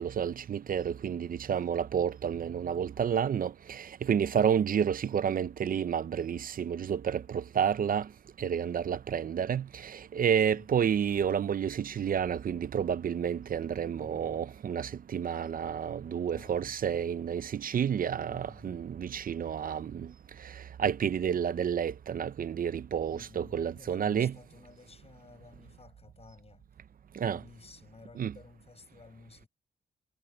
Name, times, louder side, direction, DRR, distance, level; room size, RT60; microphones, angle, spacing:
voice 1, 0.0-8.1 8.4-20.1 20.6-24.4 27.2-27.4 28.2-28.3, right 8 dB, 50° right, 0.5 m, -30 dB
voice 2, 13.9-14.5 16.0-16.8 18.2-18.9 23.1-26.7 27.2-29.5, left 4 dB, 35° left, 7.8 m, -54 dB
wide cardioid pair, 115°, 18 cm